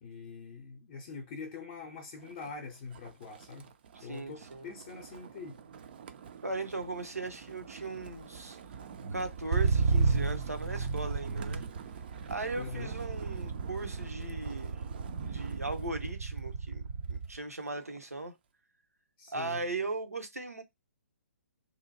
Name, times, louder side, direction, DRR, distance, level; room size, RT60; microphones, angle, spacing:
voice 1, 0.0-3.7 4.0-5.6 12.6-12.9 19.2-19.6, left 5 dB, 30° left, 0.6 m, -44 dB
Motor vehicle (road), 2.3-2.6 2.9-17.4 17.8-18.2, right 5 dB, 40° right, 0.4 m, -35 dB
voice 2, 3.9-4.7 6.4-8.6 9.1-11.7 12.3-14.8 15.2-18.3 19.3-20.6, right 3 dB, 80° right, 0.8 m, -38 dB
2.7 x 2.1 x 2.8 m
figure-of-eight pair, 130°, 8 cm